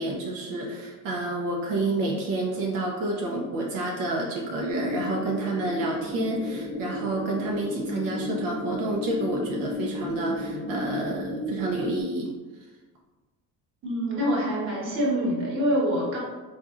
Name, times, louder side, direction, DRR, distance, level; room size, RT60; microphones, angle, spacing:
voice 1, 0.0-12.3, right 2 dB, 80° right, -1 dB, 0.6 m, -29 dB
sound 1, 4.7-12.0, left 2 dB, 10° left, 0.3 m, -33 dB
voice 2, 13.8-16.2, equal, 35° right, -4 dB, 1.1 m, -25 dB
4.1 x 2.4 x 2.4 m, 1.3 s
cardioid pair, 140°, 34 cm